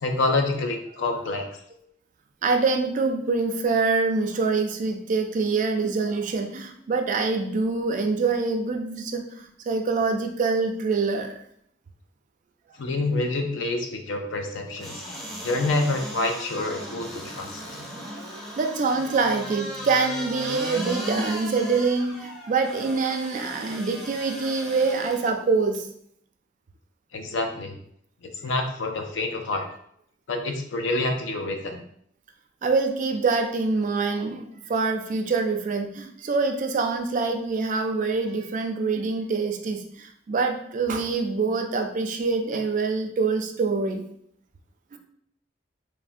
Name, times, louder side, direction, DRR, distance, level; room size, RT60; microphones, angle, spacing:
voice 1, 0.0-1.4 12.8-15.0 15.4-17.6 27.1-27.8 28.4-29.7 30.3-31.8, left 2 dB, 70° left, 4 dB, 0.5 m, -27 dB
voice 2, 2.4-11.4 18.6-25.9 32.6-44.0, right 4 dB, 45° right, 4 dB, 0.3 m, -25 dB
sound 1, 14.8-25.3 25.7-25.8, equal, ahead, 0.6 m, -36 dB
3.3 x 2.1 x 2.5 m, 0.67 s
head